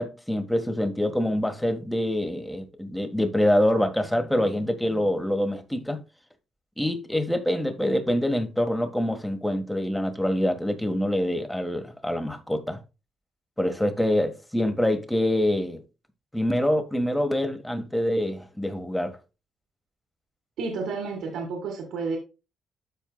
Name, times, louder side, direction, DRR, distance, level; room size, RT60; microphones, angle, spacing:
voice 1, 0.0-6.0 6.8-12.8 13.6-15.8 16.3-19.2, left 1 dB, 5° left, 1.5 m, -25 dB
voice 2, 20.6-22.2, right 4 dB, 80° right, 2.1 m, -31 dB
13.0 x 4.5 x 2.3 m
cardioid pair, 90°, 0 cm